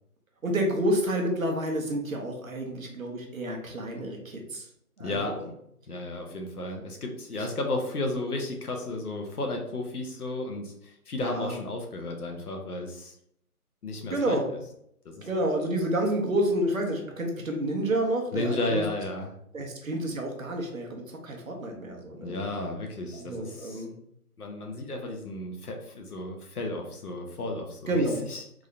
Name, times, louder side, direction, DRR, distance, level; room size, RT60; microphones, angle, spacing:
voice 1, 0.4-4.7 5.0-5.5 7.3-7.5 11.2-11.6 14.1-14.4 15.2-18.8 19.5-22.4 23.2-23.9 27.9-28.2, right 1 dB, 60° right, 2 dB, 1.0 m, -29 dB
voice 2, 5.0-5.3 5.9-13.2 13.8-14.4 15.0-15.3 18.3-19.3 22.2-23.8 24.4-28.4, left 2 dB, 75° left, 2 dB, 1.0 m, -33 dB
3.7 x 2.5 x 3.2 m, 0.72 s
hypercardioid pair, 180°, 46 cm